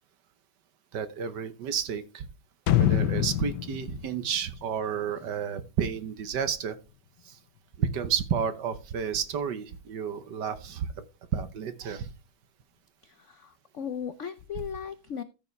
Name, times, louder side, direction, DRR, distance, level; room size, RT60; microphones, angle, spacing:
voice 1, 0.9-2.2 2.8-6.8 7.2-7.4 7.8-10.9 11.3-12.1, right 7 dB, 60° right, 12 dB, 1.5 m, -31 dB
sound 1, 2.7-5.5 5.8-5.9, left 11 dB, 65° left, 1.3 m, -26 dB
voice 2, 13.0-15.2, left 8 dB, 85° left, 12 dB, 0.6 m, -37 dB
13.5 x 7.0 x 3.2 m, 0.29 s
omnidirectional pair, 2.2 m